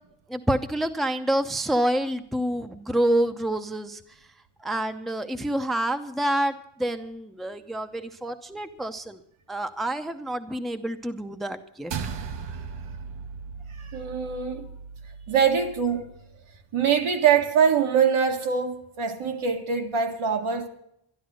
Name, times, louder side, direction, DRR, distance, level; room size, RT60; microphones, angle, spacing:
voice 1, 0.3-4.0 4.6-6.5 6.8-9.2 9.5-11.9, right 1 dB, ahead, 0.6 m, -27 dB
sound 1, 11.9-16.5, right 6 dB, 60° right, 1.0 m, -38 dB
voice 2, 13.7-14.6 15.3-16.1 16.7-20.7, right 7 dB, 75° right, 1.9 m, -23 dB
12.5 x 12.0 x 6.3 m
wide cardioid pair, 160°, 50 cm